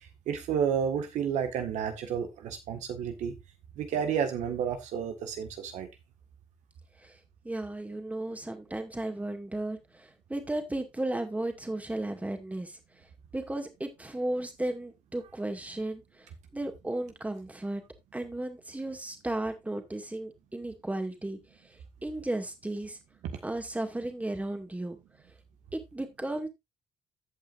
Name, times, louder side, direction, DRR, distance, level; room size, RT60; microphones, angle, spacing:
voice 1, 0.3-3.3 3.7-5.9, right 7 dB, 80° right, 1.7 m, -31 dB
voice 2, 7.4-12.8 13.3-16.3 16.5-17.8 18.1-21.4 21.6-23.0 23.4-25.0 25.7-26.5, right 1 dB, 10° right, 2.2 m, -34 dB
15.5 x 5.5 x 2.6 m
cardioid pair, 80°, 12 cm